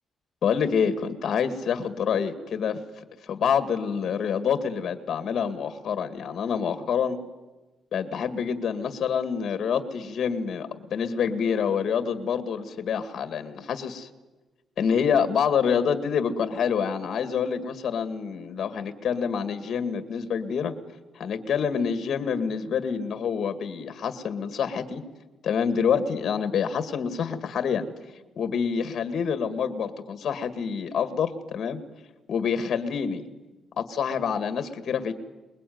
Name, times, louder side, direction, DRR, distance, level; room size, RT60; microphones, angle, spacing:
voice 1, 0.4-2.8 3.2-7.2 7.9-14.1 14.8-20.7 21.2-25.0 25.4-27.8 28.4-31.8 32.3-33.2 33.8-35.1, left 7 dB, 50° left, 10 dB, 2.0 m, -27 dB
29.0 x 21.5 x 9.5 m, 1.2 s
wide cardioid pair, 160°, 0 cm